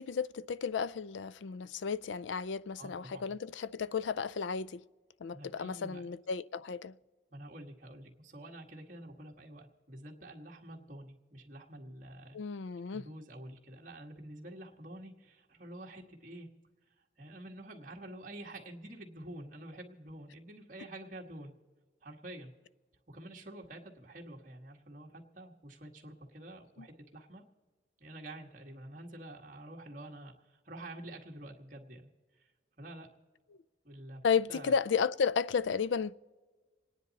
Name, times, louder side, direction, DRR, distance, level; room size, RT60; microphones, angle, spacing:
voice 1, 0.0-4.8 5.2-6.9 12.3-13.1 26.8-26.9 34.2-36.1, left 6 dB, 85° left, 0.4 m, -33 dB
voice 2, 2.8-3.3 5.3-6.1 7.3-12.4 12.9-16.5 17.2-21.5 22.0-22.5 23.1-27.4 28.0-32.1 32.4-32.5 32.8-33.1 33.8-34.2 34.5-34.7, right 1 dB, 45° right, 1.8 m, -48 dB
28.0 x 10.0 x 4.1 m
head